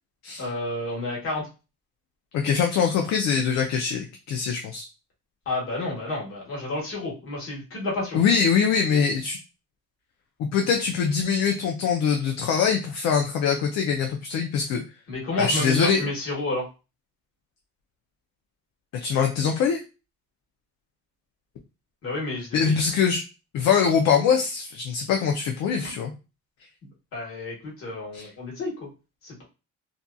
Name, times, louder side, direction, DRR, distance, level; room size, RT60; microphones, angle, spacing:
voice 1, 0.4-1.4 5.5-8.2 15.1-16.6 22.0-22.7 25.8-25.9 27.1-28.7 29.2-29.4, left 2 dB, 45° left, -3 dB, 1.3 m, -30 dB
voice 2, 2.3-4.9 8.1-9.4 10.4-14.8 15.4-16.1 19.0-19.8 22.5-23.2 23.5-26.1 28.1-28.3, left 6 dB, 60° left, 2 dB, 0.5 m, -23 dB
2.7 x 2.4 x 2.2 m, 0.30 s
cardioid pair, 145°, 30 cm